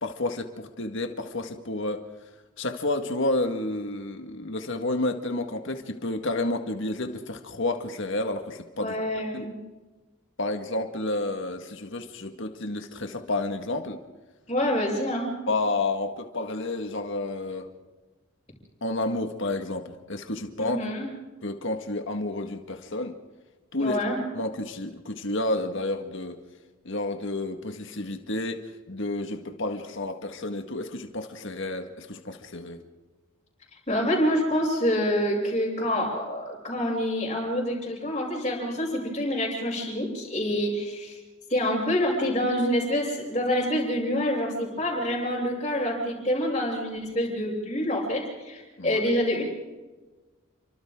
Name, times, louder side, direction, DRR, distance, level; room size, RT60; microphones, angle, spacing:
voice 1, 0.0-2.0 2.6-9.0 9.3-9.5 10.4-14.0 15.5-17.7 18.8-20.8 21.4-23.2 23.7-24.0 24.3-26.4 26.8-28.6 28.9-32.8 48.8-49.0, left 2 dB, 60° left, 5 dB, 1.8 m, -30 dB
voice 2, 8.8-9.5 14.5-15.3 20.6-21.1 23.8-24.2 33.9-41.2 41.5-49.4, equal, 25° left, -8 dB, 6.4 m, -27 dB
29.5 x 25.0 x 3.8 m, 1.2 s
head